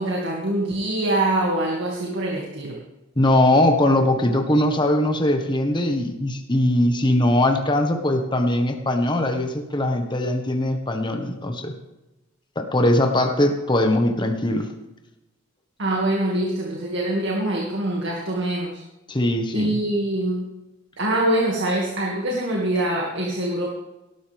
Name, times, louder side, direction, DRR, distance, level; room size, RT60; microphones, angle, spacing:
voice 1, 0.0-2.8 15.8-18.8 19.5-20.4 21.0-23.7, right 1 dB, 60° right, -2 dB, 2.3 m, -24 dB
voice 2, 3.2-11.7 12.5-14.7 19.1-19.8, left 1 dB, 20° left, 4 dB, 1.4 m, -21 dB
18.0 x 12.5 x 3.6 m, 1.0 s
head